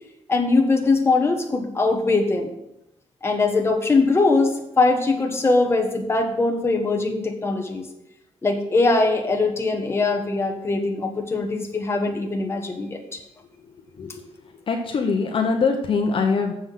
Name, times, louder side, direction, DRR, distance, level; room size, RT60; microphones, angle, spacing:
voice 1, 0.3-2.5 3.2-7.9 8.4-13.2, left 3 dB, 20° left, 2 dB, 1.4 m, -21 dB
voice 2, 14.7-16.5, left 4 dB, 50° left, 3 dB, 1.0 m, -22 dB
7.4 x 6.2 x 7.6 m, 0.83 s
wide cardioid pair, 135°, 11 cm